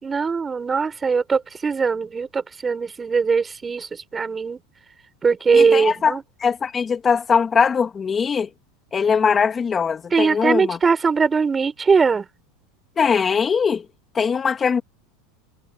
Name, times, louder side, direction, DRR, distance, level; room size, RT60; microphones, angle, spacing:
voice 1, 0.0-4.6 5.2-6.2 10.1-12.3, right 5 dB, 20° right, 5.8 m, -20 dB
voice 2, 5.5-8.5 8.9-10.8 13.0-13.9 14.1-14.8, left 6 dB, 25° left, 3.0 m, -21 dB
supercardioid pair, 110°, 0 cm